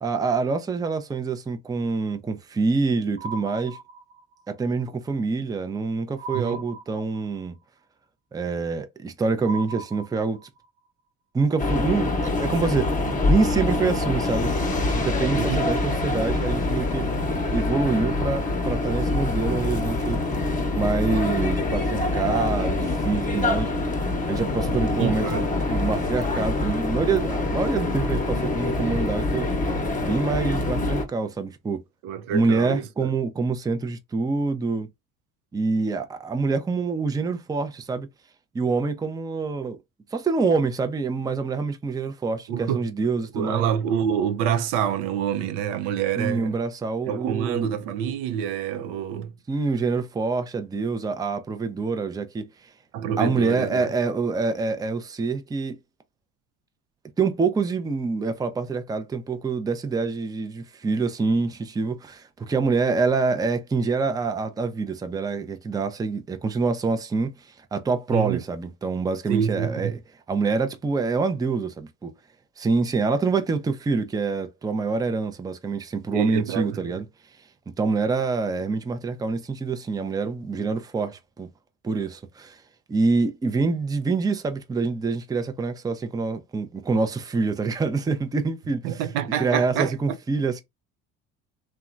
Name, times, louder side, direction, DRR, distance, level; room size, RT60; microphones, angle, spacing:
voice 1, 0.0-3.8 4.5-7.5 8.3-10.4 11.3-12.9 13.3-14.5 14.9-17.1 17.5-20.2 20.7-23.7 24.3-29.5 30.0-31.8 32.3-34.9 35.5-38.1 38.5-39.8 40.1-43.6 46.2-47.7 49.5-52.4 53.2-55.7 57.2-67.3 67.7-70.0 70.3-72.1 72.6-77.0 77.8-81.5 81.8-82.6 82.9-89.0 89.4-90.6, right 4 dB, 10° right, 0.4 m, -26 dB
sound 1, 3.2-4.4 6.2-7.4 9.4-10.6, right 4 dB, 30° right, 0.8 m, -38 dB
voice 2, 6.3-6.6 15.3-15.7 25.0-25.5 32.0-33.1 42.5-42.8 43.3-46.5 47.1-49.3 52.9-53.9 68.1-68.4 69.3-70.0 76.1-77.0 88.8-90.2, right 9 dB, 75° right, 0.6 m, -27 dB
sound 2, 11.6-31.0, left 2 dB, 20° left, 0.8 m, -25 dB
2.8 x 2.2 x 2.4 m
supercardioid pair, 75°, 38 cm